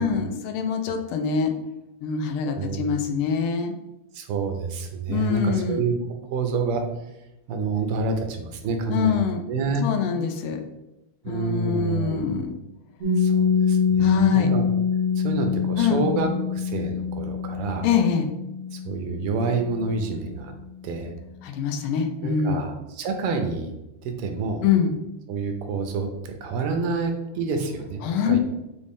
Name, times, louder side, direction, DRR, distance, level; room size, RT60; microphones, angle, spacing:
voice 1, 0.0-1.5 2.0-3.7 5.1-5.8 8.9-9.4 9.8-10.6 11.3-12.5 14.0-14.5 15.8-16.0 17.8-18.3 21.4-22.6 24.6-24.9 28.0-28.4, left 7 dB, 80° left, 5 dB, 1.5 m, -24 dB
voice 2, 2.6-3.0 4.1-5.9 6.3-6.8 7.5-9.8 11.2-12.5 13.2-14.6 15.2-17.9 18.7-20.5 20.8-21.1 22.2-23.7 24.0-24.6 25.3-28.4, right 4 dB, 90° right, 5 dB, 1.6 m, -28 dB
Piano, 13.0-20.3, left 6 dB, 70° right, 0.7 m, -25 dB
5.2 x 2.5 x 3.5 m, 0.93 s
omnidirectional pair, 2.4 m